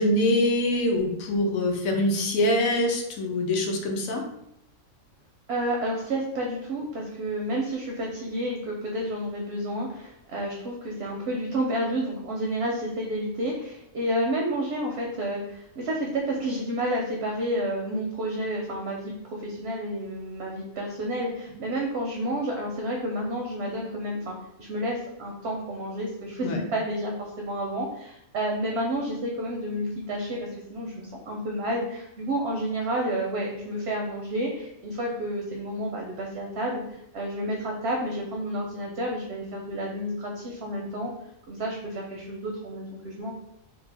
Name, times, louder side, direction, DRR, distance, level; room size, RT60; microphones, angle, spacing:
voice 1, 0.0-4.2 26.4-26.6, left 1 dB, 90° left, 2 dB, 1.0 m, -24 dB
voice 2, 5.5-36.8 37.1-41.1 41.5-43.3, right 1 dB, 65° right, 0 dB, 0.7 m, -30 dB
2.6 x 2.1 x 3.3 m, 0.78 s
omnidirectional pair, 1.4 m